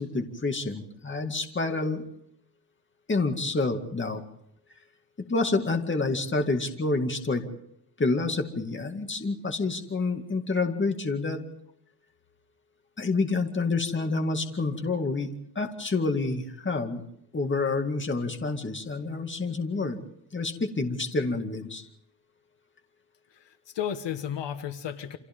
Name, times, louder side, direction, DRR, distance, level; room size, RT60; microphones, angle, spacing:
voice 1, 0.0-2.0 3.1-4.2 5.3-7.4 8.0-11.4 13.0-17.0 17.3-20.0 20.3-21.9, left 3 dB, 25° left, 4 dB, 2.4 m, -28 dB
voice 2, 23.3-25.2, left 9 dB, 75° left, 9 dB, 1.5 m, -33 dB
29.5 x 26.5 x 3.8 m, 0.74 s
wide cardioid pair, 145°, 43 cm